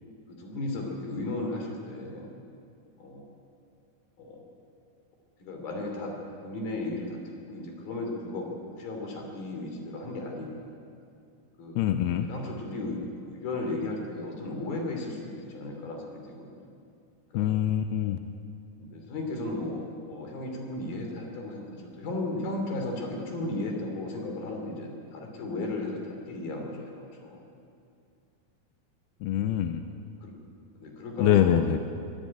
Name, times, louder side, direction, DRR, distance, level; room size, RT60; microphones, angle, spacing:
voice 1, 0.3-2.3 3.0-3.3 4.2-4.4 5.4-10.7 11.6-11.8 12.3-16.7 17.3-17.4 18.8-27.4 30.2-30.4 30.8-31.6, left 2 dB, 70° left, 2 dB, 5.2 m, -35 dB
voice 2, 11.8-12.3 17.3-18.2 29.2-29.8 31.2-31.8, left 11 dB, 90° left, 8 dB, 2.7 m, -24 dB
23.5 x 15.0 x 9.0 m, 2.4 s
omnidirectional pair, 4.5 m